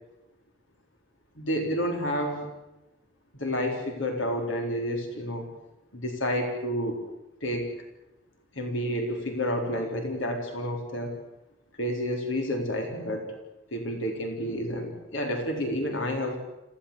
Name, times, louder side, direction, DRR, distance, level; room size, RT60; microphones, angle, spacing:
voice 1, 1.4-2.5 3.3-5.5 5.9-7.0 7.4-7.7 8.5-11.2 11.8-13.3 13.7-16.4, equal, 80° left, 3 dB, 4.0 m, -30 dB
27.0 x 16.0 x 8.7 m, 0.98 s
head